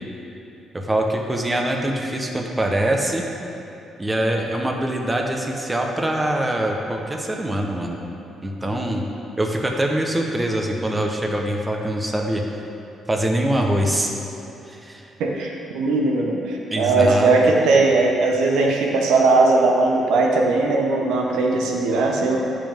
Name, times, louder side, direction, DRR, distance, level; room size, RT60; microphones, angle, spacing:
voice 1, 0.7-3.3 4.0-8.0 8.4-9.0 9.4-12.4 13.1-14.1 14.7-15.1 16.7-17.3, right 1 dB, 15° right, 1 dB, 1.1 m, -23 dB
voice 2, 15.2-22.4, right 3 dB, 90° right, 0 dB, 1.1 m, -19 dB
14.5 x 5.4 x 3.7 m, 3.0 s
cardioid pair, 90°, 0 cm